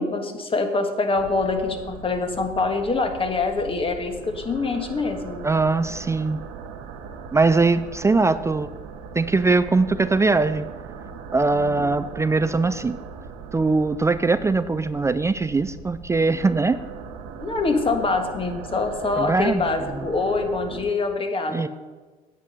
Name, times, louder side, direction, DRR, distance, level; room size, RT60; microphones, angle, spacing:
voice 1, 0.0-5.5 11.6-12.1 17.4-21.7, left 3 dB, 30° left, 6 dB, 1.5 m, -25 dB
sound 1, 1.1-20.8, right 5 dB, 90° right, 1.0 m, -39 dB
voice 2, 5.4-6.4 7.3-8.7 9.1-10.7 11.3-13.0 13.5-16.8 19.2-19.6 21.5-21.7, right 3 dB, 15° right, 13 dB, 0.4 m, -21 dB
9.7 x 7.6 x 5.5 m, 1.3 s
supercardioid pair, 85°, 17 cm